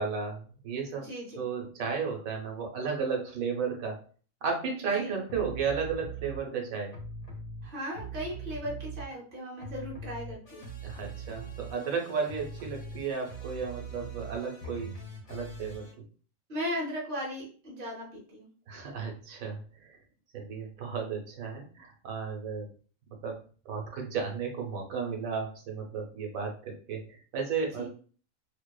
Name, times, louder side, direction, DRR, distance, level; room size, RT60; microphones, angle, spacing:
voice 1, 0.0-1.1 1.4-4.0 4.4-6.9 10.8-14.9 15.3-15.9 18.7-20.0 20.3-22.7 23.2-23.4 23.7-27.9, right 5 dB, 90° right, 1 dB, 1.1 m, -34 dB
voice 2, 0.9-1.4 4.9-5.2 7.6-10.7 16.5-18.5 27.8-27.9, equal, 45° right, -4 dB, 0.9 m, -37 dB
sound 1, 5.3-6.4 6.9-9.3 9.6-15.9, right 3 dB, 65° left, 1.3 m, -42 dB
2.7 x 2.1 x 2.2 m, 0.42 s
omnidirectional pair, 1.4 m